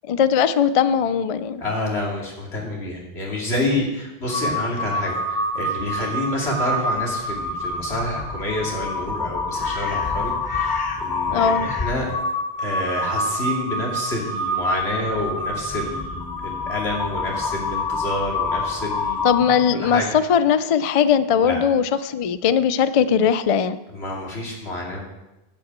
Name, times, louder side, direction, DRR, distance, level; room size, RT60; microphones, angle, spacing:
voice 1, 0.1-1.6 11.3-11.7 19.2-23.8, left 7 dB, 50° left, 14 dB, 0.4 m, -19 dB
voice 2, 1.6-12.1 12.6-19.3 19.8-20.1 21.4-21.6 23.9-25.0, left 1 dB, 85° left, -2 dB, 2.8 m, -28 dB
Crow, 4.3-19.8, left 2 dB, 25° left, 1.0 m, -27 dB
10.5 x 5.8 x 8.0 m, 0.97 s
omnidirectional pair, 1.1 m